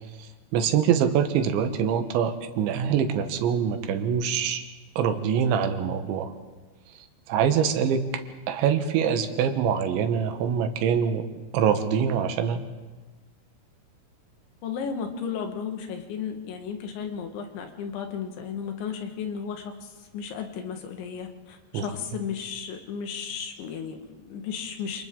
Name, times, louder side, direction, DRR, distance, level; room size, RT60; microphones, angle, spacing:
voice 1, 0.5-4.6 5.0-6.3 7.3-8.0 8.5-11.3 11.5-12.6 21.7-21.9, right 8 dB, 85° right, 8 dB, 3.6 m, -24 dB
voice 2, 14.6-25.0, left 7 dB, 85° left, 4 dB, 4.0 m, -34 dB
28.0 x 28.0 x 3.8 m, 1.2 s
omnidirectional pair, 5.1 m